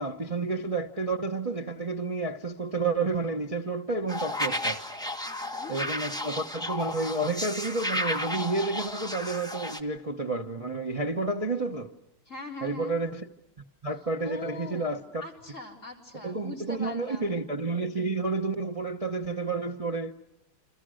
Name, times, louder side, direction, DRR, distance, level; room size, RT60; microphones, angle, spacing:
voice 1, 0.0-4.8 5.7-11.9 12.6-13.2 13.8-15.2 16.2-20.1, right 3 dB, 35° right, 0.6 m, -30 dB
sound 1, 4.1-9.8, left 1 dB, ahead, 1.3 m, -33 dB
voice 2, 5.2-5.7 12.3-13.0 14.0-17.4, left 2 dB, 35° left, 4.5 m, -42 dB
29.0 x 27.0 x 6.4 m
omnidirectional pair, 2.3 m